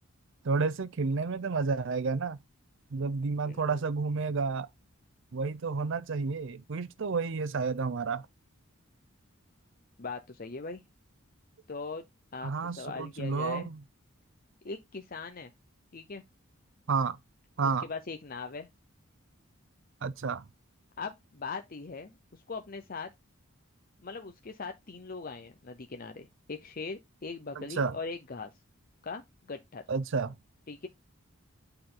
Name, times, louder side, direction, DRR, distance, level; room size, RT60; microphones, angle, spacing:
voice 1, 0.4-2.4 2.9-4.7 5.3-8.3 12.4-13.8 16.9-17.2 17.6-17.9 20.0-20.4 27.6-28.0 29.9-30.4, right 4 dB, 60° right, 0.5 m, -31 dB
voice 2, 3.4-3.8 10.0-10.8 11.7-12.0 12.3-13.7 14.6-15.5 15.9-16.2 17.8-18.7 21.0-23.1 24.0-28.5 29.0-29.2 29.5-29.8 30.7-30.9, left 4 dB, 45° left, 0.7 m, -40 dB
8.9 x 4.4 x 3.8 m
head